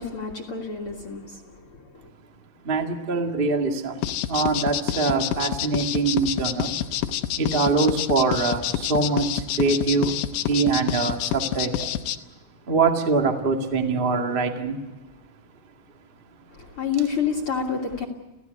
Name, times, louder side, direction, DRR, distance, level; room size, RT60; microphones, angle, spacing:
voice 1, 0.0-2.1 16.5-18.1, left 6 dB, 45° left, 0 dB, 1.8 m, -29 dB
voice 2, 2.6-6.8 7.4-10.1 10.5-12.0 12.7-14.8, right 4 dB, 80° right, 3 dB, 0.5 m, -24 dB
sound 1, 4.0-12.2, left 12 dB, 80° left, 3.1 m, -27 dB
29.5 x 16.0 x 8.3 m, 1.1 s
omnidirectional pair, 5.1 m